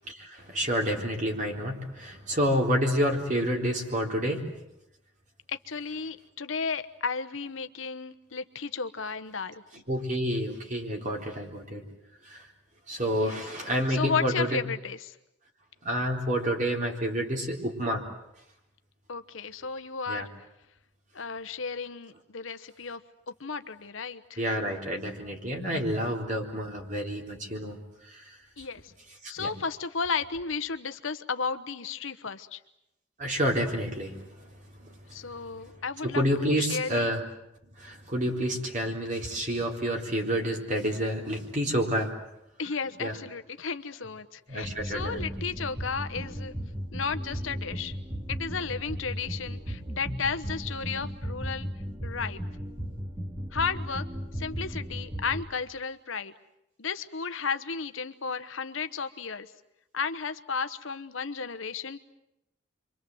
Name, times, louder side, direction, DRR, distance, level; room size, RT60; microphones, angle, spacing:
voice 1, 0.1-4.5 9.7-11.8 12.3-12.5 12.9-14.6 15.8-18.0 20.1-20.3 24.4-27.8 28.1-28.2 29.2-29.5 33.2-34.2 36.0-37.3 37.8-42.1 43.0-43.1 44.5-45.3, equal, 40° right, 1 dB, 3.9 m, -29 dB
voice 2, 5.5-9.5 13.1-13.4 13.9-15.1 19.1-20.3 21.1-23.0 23.4-24.5 28.6-28.8 29.3-32.6 35.1-37.1 42.6-46.5 46.9-47.9 48.3-51.7 52.0-52.4 53.5-54.0 54.4-56.3 56.8-59.5 59.9-62.0, left 5 dB, 75° left, 10 dB, 1.1 m, -33 dB
sound 1, 44.6-55.4, equal, 20° right, 2.6 m, -36 dB
28.5 x 24.5 x 7.9 m, 0.85 s
head